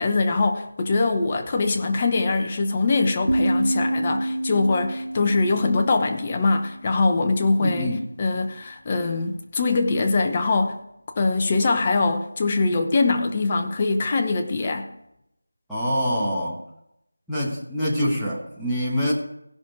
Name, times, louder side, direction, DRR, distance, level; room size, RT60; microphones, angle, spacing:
voice 1, 0.0-10.8 11.1-14.9, left 3 dB, 20° left, 0.8 m, -23 dB
sound 1, 3.3-7.2, right 1 dB, 85° right, 0.5 m, -27 dB
voice 2, 7.6-8.0 15.7-16.6 17.3-19.1, equal, ahead, 1.3 m, -25 dB
16.0 x 6.0 x 4.8 m
figure-of-eight pair, 175°, 0 cm